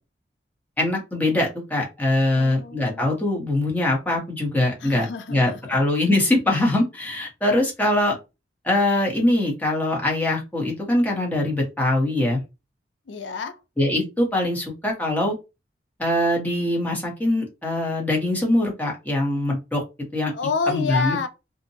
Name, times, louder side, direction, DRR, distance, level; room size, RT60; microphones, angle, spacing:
voice 1, 0.8-8.1 8.6-12.4 13.8-15.3 16.0-19.8 20.1-20.3 20.7-21.2, left 1 dB, 10° left, 0.8 m, -22 dB
voice 2, 2.3-3.2 4.8-5.8 13.1-13.6 20.3-21.3, left 5 dB, 80° left, 0.5 m, -28 dB
2.7 x 2.1 x 2.6 m
head